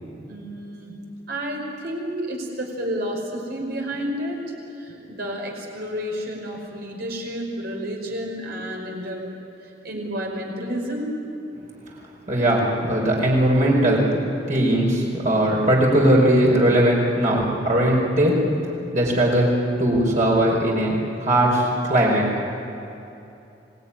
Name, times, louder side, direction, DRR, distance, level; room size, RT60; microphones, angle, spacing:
voice 1, 0.3-0.9 1.3-4.4 4.8-9.3 9.6-11.2, equal, 60° right, 0 dB, 5.4 m, -30 dB
voice 2, 12.3-14.2 14.5-18.4 18.9-22.2, right 1 dB, 45° right, -3 dB, 4.9 m, -19 dB
25.5 x 19.0 x 10.0 m, 2.8 s
head